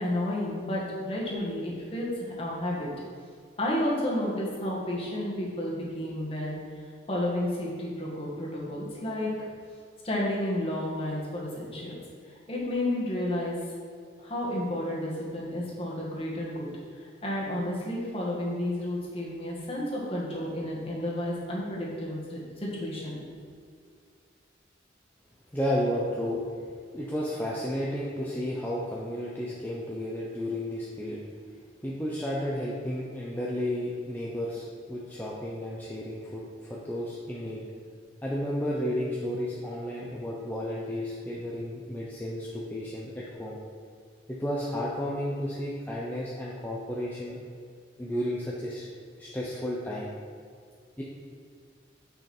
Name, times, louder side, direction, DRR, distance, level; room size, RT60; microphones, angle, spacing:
voice 1, 0.0-2.9 3.6-6.6 7.1-9.5 10.0-12.0 12.3-13.5 14.2-16.7 17.0-23.2, left 1 dB, 30° left, -4 dB, 1.9 m, -31 dB
voice 2, 25.5-26.4 26.9-31.2 31.8-37.6 38.2-43.6 44.3-47.4 48.0-48.9 49.2-50.1 51.0-51.1, equal, 10° left, -5 dB, 0.7 m, -32 dB
9.2 x 5.7 x 4.4 m, 2.2 s
head